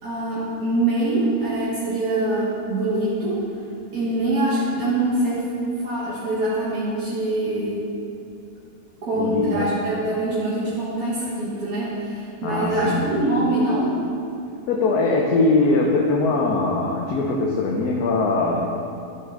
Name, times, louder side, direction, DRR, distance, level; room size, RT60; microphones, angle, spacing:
voice 1, 0.0-3.4 3.9-5.5 5.8-7.8 9.0-13.9, right 1 dB, 70° right, -9 dB, 2.0 m, -24 dB
voice 2, 9.1-9.8 12.4-13.1 14.7-18.7, left 3 dB, 85° left, -1 dB, 1.4 m, -21 dB
11.5 x 7.3 x 3.7 m, 2.6 s
omnidirectional pair, 1.6 m